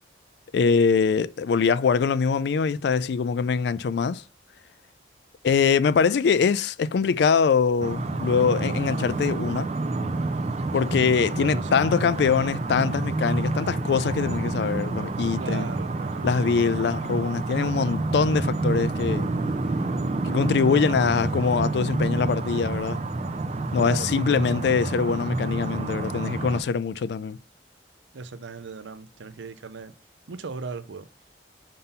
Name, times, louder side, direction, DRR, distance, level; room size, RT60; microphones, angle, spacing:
voice 1, 0.5-4.2 5.4-9.7 10.7-15.7 16.2-19.3 20.2-23.0 23.7-27.4, left 5 dB, 65° left, 0.3 m, -23 dB
sound 1, 7.8-26.6, right 2 dB, 35° right, 0.5 m, -28 dB
voice 2, 11.3-11.9 15.4-16.4 23.7-24.7 28.1-29.9 30.3-31.1, right 4 dB, 80° right, 0.6 m, -37 dB
5.5 x 3.8 x 5.5 m
head